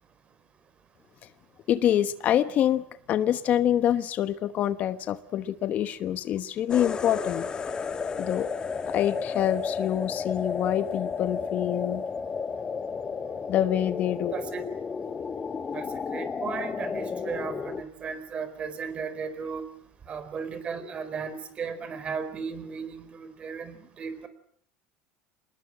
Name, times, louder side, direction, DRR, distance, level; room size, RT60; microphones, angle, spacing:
voice 1, 1.7-2.8 3.1-7.5 8.2-8.5 8.9-12.0 13.5-14.3, left 11 dB, 45° left, 1.2 m, -26 dB
sound 1, 6.7-17.8, left 5 dB, 25° left, 1.4 m, -32 dB
voice 2, 14.3-14.7 15.7-19.7 20.1-24.3, right 6 dB, 30° right, 4.3 m, -35 dB
27.0 x 20.5 x 7.6 m
supercardioid pair, 130°, 4 cm